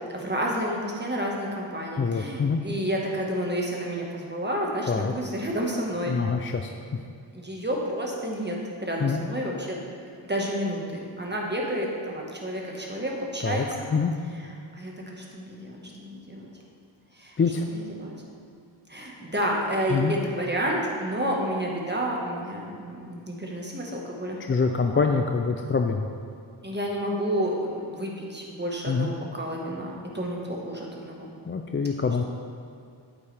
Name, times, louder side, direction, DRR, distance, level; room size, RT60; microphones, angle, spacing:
voice 1, 0.0-6.2 7.3-9.8 10.3-13.9 14.4-16.5 17.1-17.3 17.7-18.1 18.9-24.4 26.6-31.3, equal, 20° right, -2 dB, 1.5 m, -30 dB
voice 2, 2.0-2.6 4.9-5.1 6.1-6.7 9.0-9.2 13.4-13.7 13.9-14.1 17.4-17.6 19.9-20.1 24.4-26.1 28.9-29.1 31.4-32.2, left 5 dB, 30° left, 5 dB, 0.4 m, -25 dB
8.6 x 8.5 x 3.4 m, 2.3 s
wide cardioid pair, 60°, 48 cm